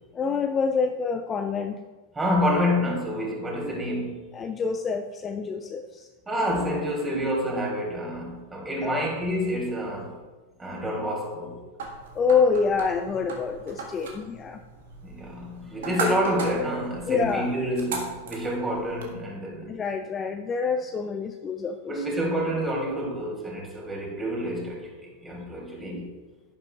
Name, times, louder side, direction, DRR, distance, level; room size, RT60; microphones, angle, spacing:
voice 1, 0.1-1.8 4.3-6.1 8.8-9.1 12.1-14.6 17.1-17.5 19.7-22.1, left 5 dB, 20° left, 0.5 m, -27 dB
voice 2, 2.2-4.3 6.3-10.1 10.6-11.6 15.0-19.8 21.9-26.1, equal, 15° right, 3.4 m, -28 dB
sound 1, 11.8-19.1, right 3 dB, 60° right, 1.9 m, -37 dB
11.0 x 11.0 x 2.5 m
figure-of-eight pair, 90°, 0 cm